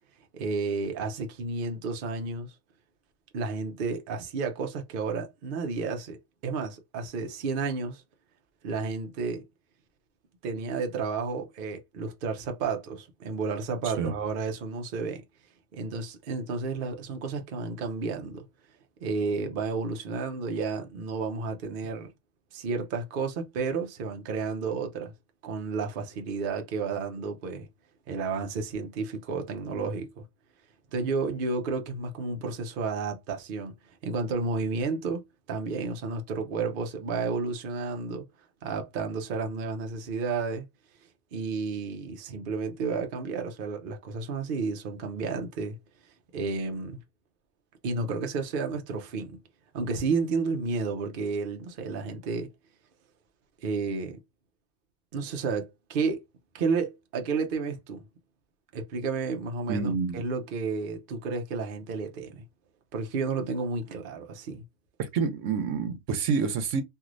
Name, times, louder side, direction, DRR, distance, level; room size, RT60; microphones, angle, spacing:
voice 1, 0.3-2.5 3.3-6.2 6.4-8.0 8.6-9.4 10.4-15.2 15.7-18.4 19.0-22.1 22.5-25.1 25.4-27.7 28.1-30.2 30.9-33.8 34.0-35.2 35.5-38.2 38.6-40.6 41.3-45.8 46.3-47.0 47.8-49.4 49.7-52.5 53.6-54.2 55.1-56.2 56.5-58.0 58.7-62.4 62.9-64.6, right 4 dB, 55° right, 0.8 m, -31 dB
voice 2, 59.7-60.2 65.0-66.8, right 5 dB, 85° right, 1.0 m, -28 dB
3.1 x 2.6 x 2.5 m
omnidirectional pair, 1.3 m